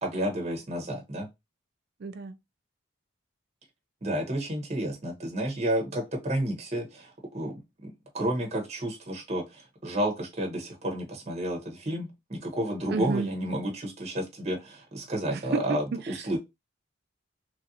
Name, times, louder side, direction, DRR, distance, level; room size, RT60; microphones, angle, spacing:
voice 1, 0.0-1.3 4.0-16.4, right 1 dB, 35° right, 0.9 m, -31 dB
voice 2, 2.0-2.4 12.9-13.3 15.3-16.4, right 3 dB, 50° right, 0.4 m, -32 dB
3.1 x 2.5 x 2.7 m
head